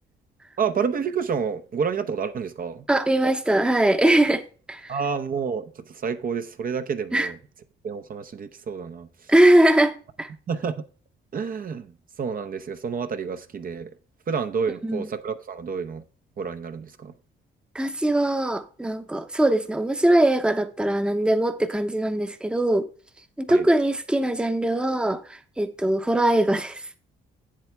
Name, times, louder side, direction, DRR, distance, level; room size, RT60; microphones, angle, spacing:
voice 1, 0.6-2.8 4.9-7.4 7.8-9.1 10.5-10.7 11.3-11.9 12.2-13.9 14.3-16.0 16.4-17.1 23.5-23.7, right 6 dB, 45° right, 0.8 m, -29 dB
voice 2, 2.9-4.9 7.1-7.3 9.3-10.3 14.8-15.1 17.7-22.9 23.4-26.8, right 1 dB, 5° right, 0.8 m, -21 dB
8.1 x 7.5 x 3.4 m
cardioid pair, 90°, 20 cm